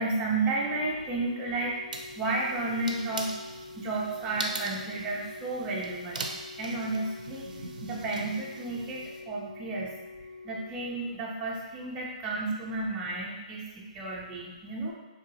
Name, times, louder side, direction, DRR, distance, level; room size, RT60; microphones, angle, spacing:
voice 1, 0.0-3.3 3.7-7.5 7.8-14.9, right 2 dB, 20° right, -4 dB, 0.5 m, -32 dB
Organ, 0.7-11.6 12.7-12.9, left 3 dB, 70° left, 0.9 m, -47 dB
sound 1, 1.9-9.2, right 3 dB, 75° right, 0.4 m, -41 dB
2.7 x 2.7 x 2.7 m, 1.2 s
hypercardioid pair, 140°, 4 cm